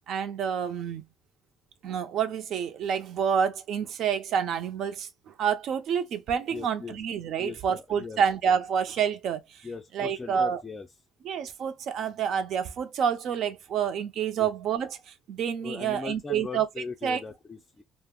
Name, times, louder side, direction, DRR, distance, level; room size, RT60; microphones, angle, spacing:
voice 1, 0.1-1.0 1.8-9.6 9.9-10.6 11.2-15.0 15.3-16.7 17.0-17.2, right 7 dB, 65° right, 0.5 m, -28 dB
voice 2, 6.5-7.0 7.4-8.2 9.6-10.9 14.4-14.5 15.6-17.8, left 4 dB, 20° left, 0.4 m, -39 dB
2.3 x 2.0 x 3.5 m
cardioid pair, 120°, 0 cm